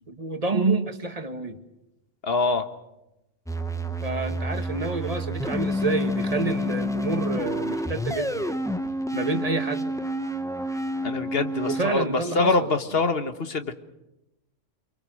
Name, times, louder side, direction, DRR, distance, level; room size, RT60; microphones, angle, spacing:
voice 1, 0.1-1.6 4.0-8.5 9.1-9.9 11.6-12.7, right 3 dB, 30° right, 7 dB, 1.7 m, -28 dB
voice 2, 2.2-2.7 11.0-13.7, left 3 dB, 55° left, 9 dB, 1.6 m, -24 dB
sound 1, 3.5-11.8, equal, 5° left, 1.0 m, -29 dB
27.0 x 23.5 x 6.4 m, 0.93 s
omnidirectional pair, 1.3 m